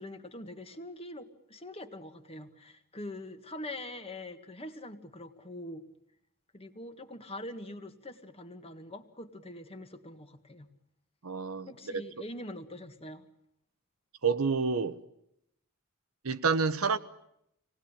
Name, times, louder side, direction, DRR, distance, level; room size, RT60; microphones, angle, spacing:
voice 1, 0.0-5.9 6.5-10.7 11.7-13.3, left 1 dB, 25° left, 1.8 m, -44 dB
voice 2, 11.2-11.7 14.2-15.0 16.2-17.0, right 5 dB, 70° right, 1.1 m, -28 dB
26.5 x 19.0 x 9.9 m
head